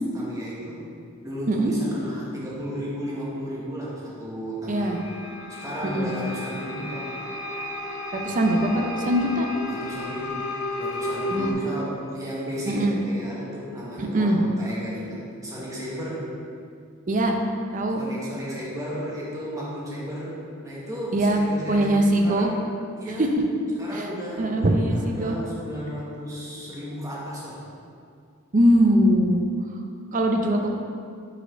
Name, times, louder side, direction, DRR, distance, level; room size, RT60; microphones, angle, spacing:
voice 1, 0.1-4.9 5.5-7.1 9.7-10.5 10.8-16.3 17.9-22.6 23.0-23.3 23.8-27.6, equal, 15° right, -6 dB, 1.2 m, -34 dB
voice 2, 4.7-5.0 5.8-6.1 8.1-9.5 11.3-11.5 12.6-13.0 14.0-14.4 17.1-17.4 17.7-18.0 21.1-21.4 21.7-22.5 23.2-23.3 23.9-24.0 24.4-25.4 28.5-29.4 30.1-30.8, right 1 dB, 35° right, 3 dB, 0.5 m, -21 dB
sound 1, 4.8-11.5, left 2 dB, 80° left, 0.7 m, -33 dB
5.0 x 4.2 x 5.0 m, 2.3 s
head